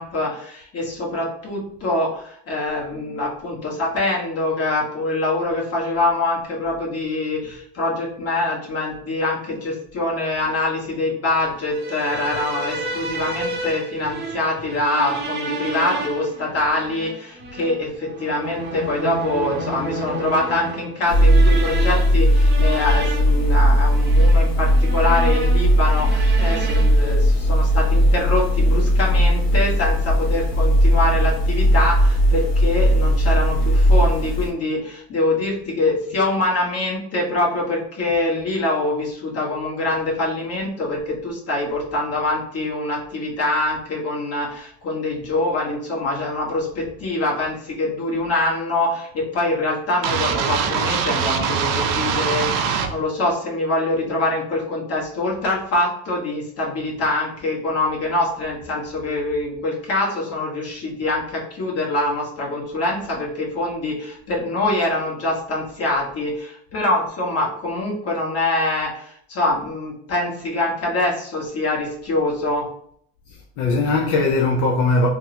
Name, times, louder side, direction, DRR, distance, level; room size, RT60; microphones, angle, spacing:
voice 1, 0.0-72.7, left 2 dB, 45° left, 1.3 m, -24 dB
sound 1, 11.6-27.1, right 2 dB, 30° right, 0.7 m, -31 dB
sound 2, 21.1-34.5, equal, 80° left, 1.1 m, -17 dB
sound 3, 50.0-52.9, right 6 dB, 65° right, 0.6 m, -22 dB
voice 2, 73.3-75.1, left 3 dB, 60° left, 0.5 m, -20 dB
3.4 x 2.1 x 2.8 m
supercardioid pair, 95°, 34 cm